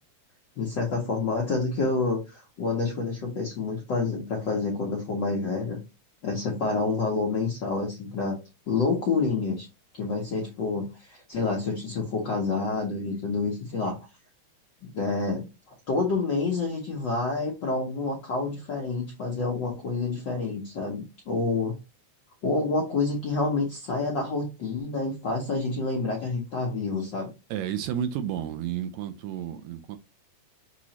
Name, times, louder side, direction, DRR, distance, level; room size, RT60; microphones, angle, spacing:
voice 1, 0.6-5.8 6.2-8.4 8.7-9.7 9.9-14.0 14.8-15.5 15.9-21.8 22.4-27.3, left 3 dB, 65° left, 1.1 m, -28 dB
voice 2, 27.5-30.0, right 10 dB, 80° right, 1.8 m, -31 dB
6.1 x 3.0 x 2.8 m
omnidirectional pair, 3.4 m